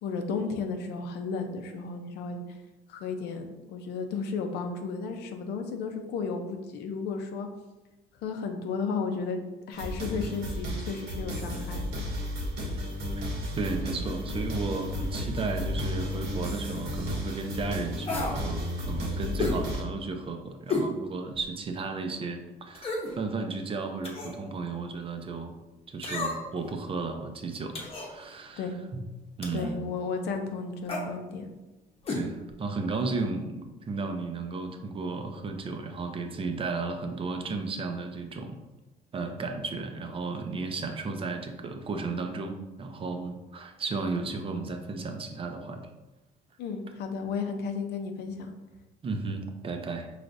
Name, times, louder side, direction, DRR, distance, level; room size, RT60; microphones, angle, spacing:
voice 1, 0.0-2.4 2.9-7.5 8.2-11.9 28.6-28.8 29.5-31.5 46.6-48.5, left 4 dB, 75° left, 5 dB, 0.6 m, -33 dB
sound 1, 9.7-19.8, left 1 dB, 85° right, 1.3 m, -33 dB
voice 2, 13.6-25.6 25.9-29.0 29.4-29.8 32.1-38.6 39.1-45.9 49.0-50.1, right 3 dB, 35° right, 5 dB, 0.5 m, -34 dB
sound 2, 18.1-18.4 19.4-19.6 20.7-20.9 21.4-21.5 22.7-23.1 24.0-24.4 26.0-26.6 27.7-28.1 29.4-29.7 30.8-31.1 32.0-32.2 32.5-32.6, left 3 dB, 35° left, 0.9 m, -31 dB
4.7 x 3.2 x 2.6 m, 1.1 s
cardioid pair, 110°, 17 cm